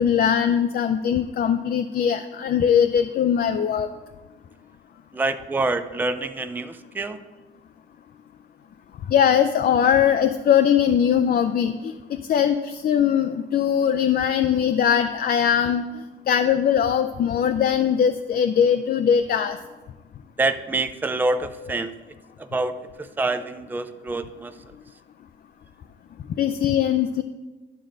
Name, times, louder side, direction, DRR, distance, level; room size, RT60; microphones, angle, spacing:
voice 1, 0.0-3.9 9.1-15.8 16.3-19.6 26.4-27.2, left 8 dB, 50° left, 8 dB, 0.4 m, -21 dB
voice 2, 5.1-7.2 20.4-21.9 22.4-22.8 23.2-24.5, right 2 dB, 10° right, 9 dB, 0.4 m, -26 dB
11.0 x 3.8 x 6.3 m, 1.2 s
cardioid pair, 90°, 20 cm